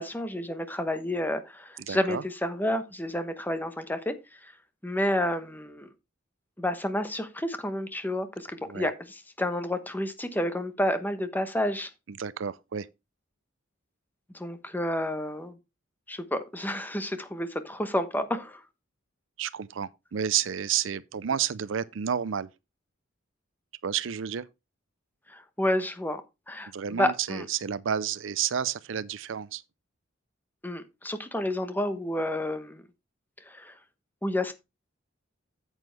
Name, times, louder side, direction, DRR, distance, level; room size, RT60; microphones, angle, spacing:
voice 1, 0.0-4.1 4.4-4.5 4.8-5.9 6.6-11.9 14.3-15.6 16.1-18.6 25.3-26.2 26.5-27.4 30.6-32.8 33.5-33.7 34.2-34.5, left 1 dB, 10° left, 1.0 m, -30 dB
voice 2, 1.9-2.2 8.6-8.9 12.1-12.9 19.4-22.5 23.8-24.5 26.7-29.6, right 8 dB, 70° right, 0.5 m, -30 dB
9.0 x 8.0 x 3.3 m
head